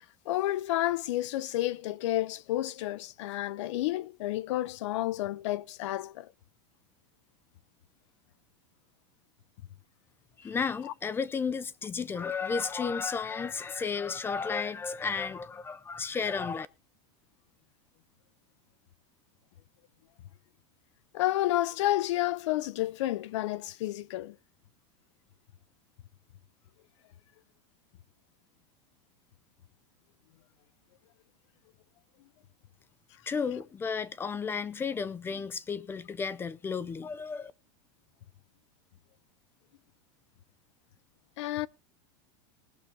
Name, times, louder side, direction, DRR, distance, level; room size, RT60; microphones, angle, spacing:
voice 1, 0.3-6.3 21.1-24.4 41.4-41.7, left 15 dB, 75° left, 0.8 m, -30 dB
voice 2, 10.4-16.7 33.3-37.5, left 5 dB, 15° left, 0.5 m, -33 dB
19.5 x 7.0 x 3.9 m
supercardioid pair, 155°, 16 cm